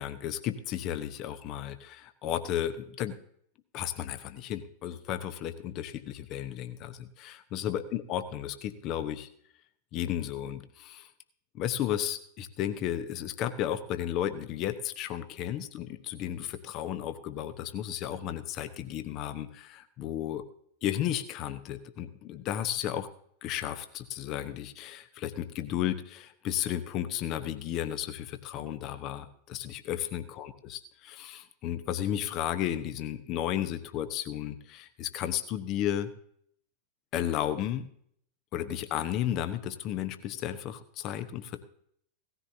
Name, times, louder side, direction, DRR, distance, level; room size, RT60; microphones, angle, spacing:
voice 1, 0.0-3.2 3.7-9.3 9.9-11.1 11.5-20.4 20.8-23.1 23.4-36.1 37.1-37.9 38.5-41.6, left 11 dB, 40° left, 11 dB, 1.0 m, -33 dB
17.5 x 14.0 x 2.8 m, 0.66 s
figure-of-eight pair, 90°, 0 cm